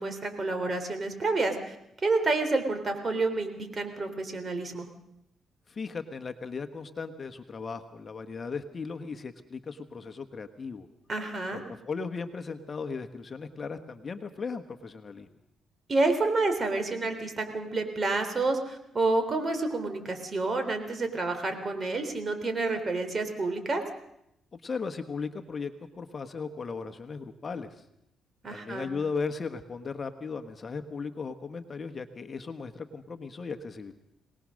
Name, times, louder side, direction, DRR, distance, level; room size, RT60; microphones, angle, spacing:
voice 1, 0.0-1.8 2.0-4.9 11.1-11.6 15.9-23.8 28.4-28.9, right 3 dB, 35° right, 7 dB, 3.6 m, -29 dB
voice 2, 5.7-10.9 11.5-15.3 24.5-27.8 28.5-33.9, left 5 dB, 35° left, 7 dB, 1.4 m, -37 dB
23.0 x 19.0 x 6.5 m, 0.79 s
cardioid pair, 90°, 0 cm